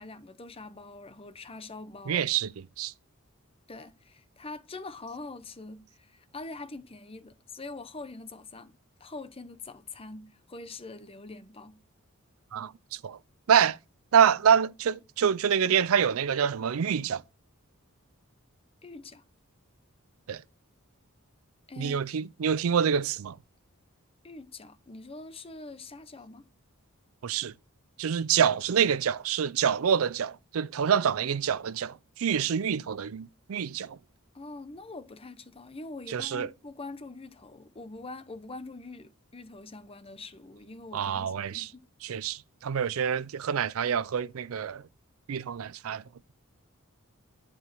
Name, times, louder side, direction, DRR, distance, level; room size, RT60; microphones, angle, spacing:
voice 1, 0.0-2.3 3.7-8.7 9.0-11.8 18.8-19.2 21.7-22.0 24.2-26.4 34.3-41.8, left 3 dB, 25° left, 0.8 m, -44 dB
voice 2, 2.1-2.5 2.8-2.9 12.5-13.2 13.5-13.8 14.1-17.2 20.3-20.4 21.8-23.4 27.2-27.5 28.0-34.0 36.1-36.5 40.9-41.7 42.0-44.8 45.3-46.0, right 7 dB, 75° right, 0.4 m, -26 dB
11.0 x 5.0 x 7.4 m
head